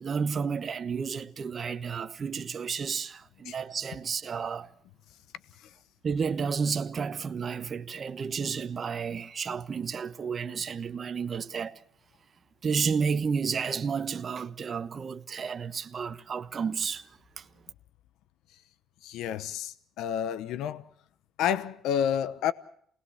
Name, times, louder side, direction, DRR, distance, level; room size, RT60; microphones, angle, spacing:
voice 1, 0.0-4.7 6.0-11.8 12.6-17.1 17.4-17.5, right 6 dB, 40° right, 1.1 m, -31 dB
voice 2, 19.0-20.8 21.4-22.5, left 9 dB, 80° left, 0.9 m, -29 dB
28.5 x 19.0 x 7.1 m
cardioid pair, 90°, 0 cm